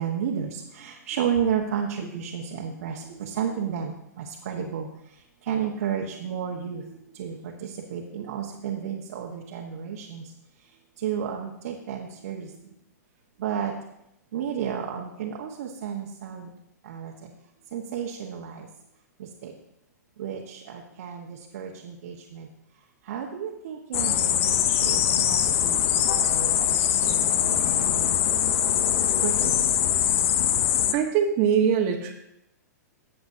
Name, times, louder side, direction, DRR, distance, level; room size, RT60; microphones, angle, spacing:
voice 1, 0.0-4.9 5.5-10.2 11.0-12.5 13.4-13.7 14.3-16.5 16.8-17.1 17.7-18.6 19.4-19.5 20.2-22.5 23.1-28.2 29.2-29.7, right 8 dB, 55° right, -1 dB, 1.3 m, -32 dB
sound 1, 23.9-30.9, left 10 dB, 45° left, 0.7 m, -22 dB
voice 2, 30.9-32.1, right 8 dB, 35° right, -2 dB, 1.4 m, -22 dB
14.5 x 7.7 x 2.8 m, 0.82 s
figure-of-eight pair, 115°, 10 cm